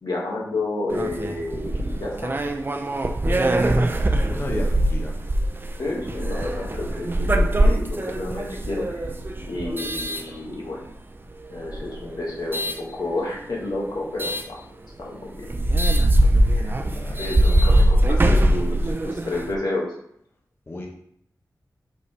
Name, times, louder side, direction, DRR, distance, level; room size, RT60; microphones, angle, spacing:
voice 1, 0.0-2.3 5.8-9.0 9.5-10.8 11.5-14.6 15.0-15.4 16.6-16.7 17.2-19.9, left 2 dB, 85° left, -3 dB, 1.8 m, -30 dB
sound 1, 0.9-10.9 11.6-12.8 14.2-14.5 15.0-15.1 15.4-19.5, right 1 dB, 30° right, 0.5 m, -22 dB
voice 2, 4.3-5.1 16.8-17.3 20.7-20.9, left 1 dB, 35° left, 0 dB, 0.9 m, -33 dB
5.3 x 5.3 x 3.3 m, 0.70 s
wide cardioid pair, 100°, 7 cm